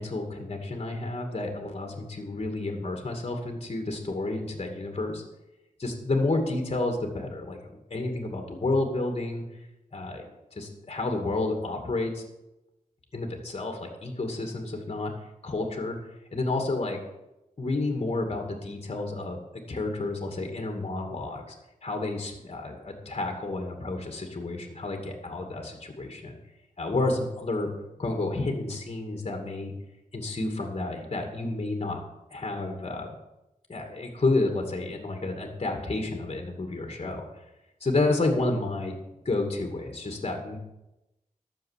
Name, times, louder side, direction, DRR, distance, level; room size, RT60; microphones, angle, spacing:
voice 1, 0.0-5.2 5.8-7.6 7.9-9.4 9.9-10.2 10.6-12.2 13.1-15.1 15.4-16.0 16.3-17.0 17.6-21.6 21.8-26.4 26.8-27.7 28.0-29.7 30.1-32.0 32.3-33.2 33.7-37.3 37.8-39.0 39.2-40.6, left 2 dB, 45° left, 3 dB, 2.4 m, -30 dB
12.0 x 7.3 x 7.4 m, 0.94 s
wide cardioid pair, 80°, 14 cm